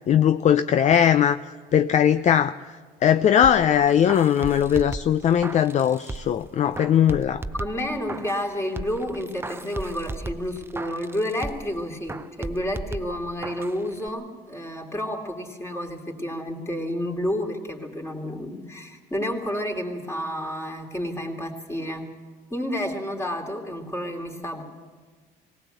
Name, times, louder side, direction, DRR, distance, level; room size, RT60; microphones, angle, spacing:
voice 1, 0.1-1.4 1.7-7.4, left 9 dB, 45° left, 12 dB, 0.5 m, -20 dB
sound 1, 3.4-6.4 6.7-8.5 8.8-11.7 12.1-13.8 14.1-14.2, right 2 dB, 15° right, 0.6 m, -36 dB
voice 2, 7.6-22.0 22.5-24.6, left 1 dB, 15° left, 1 dB, 3.1 m, -30 dB
19.0 x 18.5 x 8.0 m, 1.5 s
cardioid pair, 110°, 17 cm